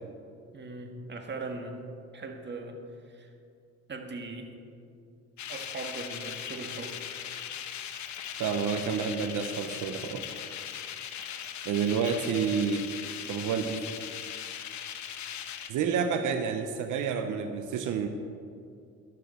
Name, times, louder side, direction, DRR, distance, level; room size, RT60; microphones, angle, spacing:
voice 1, 0.5-1.8 2.1-2.8 3.1-3.3 3.9-4.5 5.5-7.0, right 3 dB, 35° right, 4 dB, 1.7 m, -39 dB
sound 1, 5.4-15.7, left 9 dB, 70° left, 1.0 m, -39 dB
voice 2, 8.4-10.3 11.6-12.9 13.3-13.9 15.7-18.1, right 6 dB, 80° right, 7 dB, 0.8 m, -29 dB
13.5 x 12.0 x 4.3 m, 2.4 s
cardioid pair, 90°, 30 cm